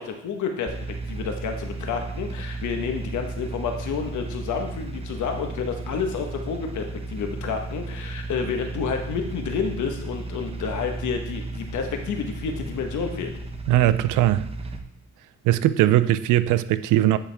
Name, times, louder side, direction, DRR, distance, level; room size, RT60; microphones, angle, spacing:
voice 1, 0.0-13.3, left 6 dB, 75° left, 1.2 m, -30 dB
sound 1, 0.7-14.8, right 2 dB, 20° right, 0.7 m, -34 dB
voice 2, 13.7-14.5 15.4-17.2, right 13 dB, 90° right, 0.5 m, -20 dB
9.8 x 4.9 x 3.4 m
cardioid pair, 90°, 30 cm